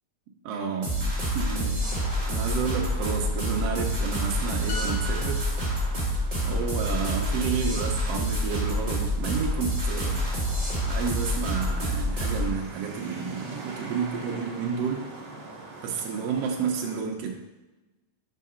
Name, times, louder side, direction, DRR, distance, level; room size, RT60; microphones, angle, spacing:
voice 1, 0.4-5.5 6.4-10.3 10.9-15.0 15.8-17.4, right 6 dB, 75° right, 0 dB, 1.5 m, -31 dB
sound 1, 0.8-12.5, equal, 20° right, 1.0 m, -27 dB
sound 2, 1.8-17.0, right 2 dB, 55° right, 1.6 m, -45 dB
sound 3, 4.7-8.3 8.6-8.9, left 1 dB, 80° left, 1.5 m, -42 dB
6.2 x 3.7 x 5.5 m, 1.1 s
omnidirectional pair, 3.6 m